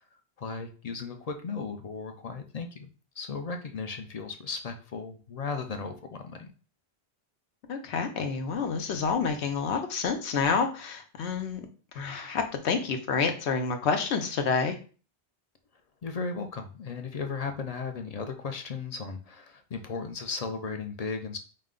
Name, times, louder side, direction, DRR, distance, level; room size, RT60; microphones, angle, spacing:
voice 1, 0.4-2.9 3.2-6.5 16.0-21.4, left 4 dB, 55° left, 6 dB, 0.4 m, -36 dB
voice 2, 7.7-11.7 11.9-14.8, left 5 dB, 90° left, 6 dB, 1.0 m, -28 dB
4.7 x 2.2 x 3.6 m, 0.38 s
omnidirectional pair, 1.1 m